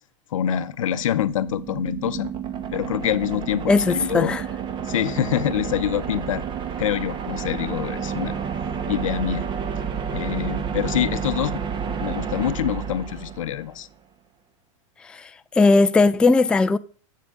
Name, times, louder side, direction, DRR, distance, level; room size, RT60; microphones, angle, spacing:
voice 1, 0.3-2.3 2.7-4.3 4.9-6.4 6.8-8.4 8.9-9.5 10.1-11.6 11.9-13.9, left 10 dB, 80° left, 0.7 m, -25 dB
sound 1, 0.7-13.8, right 7 dB, 30° right, 1.0 m, -30 dB
voice 2, 3.7-4.4 15.0-16.8, left 3 dB, 5° left, 0.3 m, -18 dB
8.4 x 6.9 x 3.6 m
hypercardioid pair, 110°, 17 cm